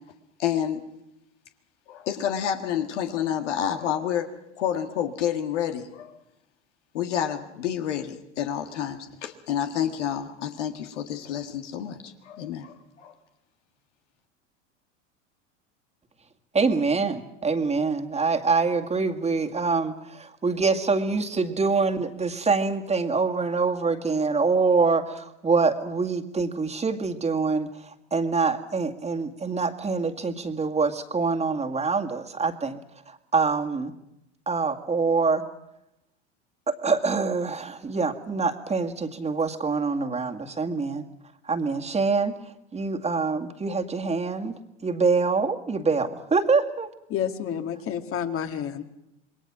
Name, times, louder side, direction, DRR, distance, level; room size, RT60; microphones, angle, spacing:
voice 1, 0.4-0.8 1.9-4.3 4.6-6.1 6.9-13.1, left 9 dB, 75° left, 5 dB, 1.9 m, -29 dB
voice 2, 16.5-32.8 33.1-33.9 34.5-35.4 36.7-41.0 41.4-42.4 42.7-44.5 44.8-46.9, right 4 dB, 20° right, 4 dB, 2.1 m, -25 dB
voice 3, 47.1-48.8, left 8 dB, 40° left, 7 dB, 2.1 m, -29 dB
27.0 x 21.5 x 6.1 m, 0.86 s
hypercardioid pair, 85°, 36 cm